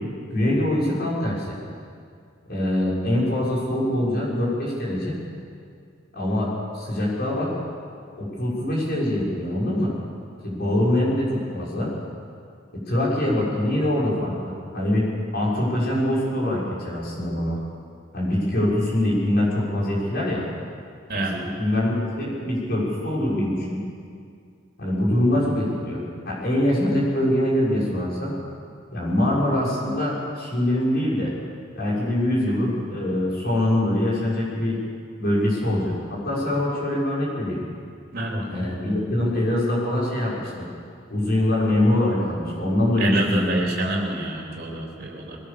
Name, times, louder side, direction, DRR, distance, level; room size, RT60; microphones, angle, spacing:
voice 1, 0.3-1.6 2.5-5.2 6.1-6.5 6.7-7.5 8.2-9.9 10.4-11.9 12.9-17.6 18.1-20.5 21.1-21.2 21.6-23.8 24.8-26.0 26.3-28.3 28.9-31.3 31.7-34.8 35.2-37.6 38.5-40.7 41.1-43.6, left 1 dB, 55° left, -5 dB, 6.3 m, -23 dB
voice 2, 21.1-21.4 38.1-38.6 43.0-45.4, right 2 dB, 50° right, -1 dB, 3.6 m, -28 dB
22.0 x 17.0 x 7.0 m, 2.2 s
head